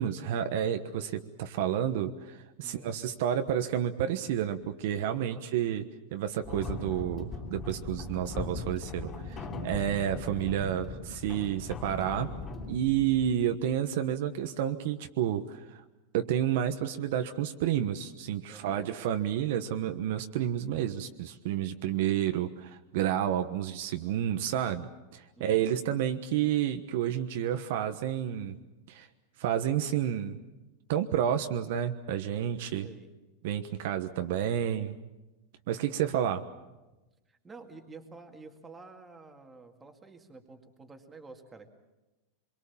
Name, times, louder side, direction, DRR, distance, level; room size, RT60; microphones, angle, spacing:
voice 1, 0.0-5.8 6.1-12.3 12.7-15.8 16.1-28.6 28.9-29.1 29.4-30.4 30.9-32.9 33.4-35.0 35.7-36.4, right 10 dB, 60° right, 7 dB, 1.2 m, -30 dB
voice 2, 2.6-2.9 5.1-5.5 18.5-18.9 25.4-25.7 32.8-33.1 37.3-41.7, right 3 dB, 10° right, 4 dB, 2.1 m, -50 dB
sound 1, 6.4-13.8, left 3 dB, 20° left, 3.6 m, -39 dB
25.5 x 23.0 x 7.2 m, 1.1 s
supercardioid pair, 160°, 0 cm